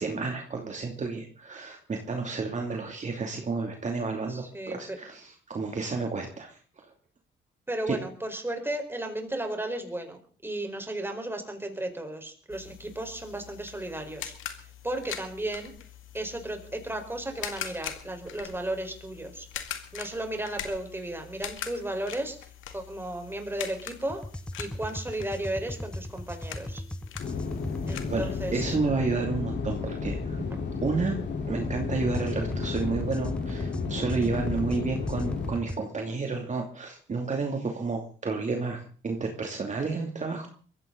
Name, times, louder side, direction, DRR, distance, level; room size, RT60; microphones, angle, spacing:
voice 1, 0.0-6.9 7.9-8.0 28.1-30.4 30.8-31.2 31.5-40.5, right 4 dB, 35° right, 2 dB, 2.8 m, -31 dB
voice 2, 4.3-5.0 7.7-15.7 16.1-22.4 22.7-24.2 24.6-26.8 27.9-28.7, right 1 dB, 10° right, 4 dB, 4.6 m, -34 dB
sound 1, 12.5-28.8, left 10 dB, 85° left, 2.1 m, -43 dB
sound 2, 24.1-28.0 31.9-35.8, left 1 dB, 5° left, 0.8 m, -38 dB
sound 3, 27.2-35.5, left 4 dB, 60° left, 4.0 m, -32 dB
22.5 x 15.5 x 4.0 m, 0.42 s
cardioid pair, 90°, 20 cm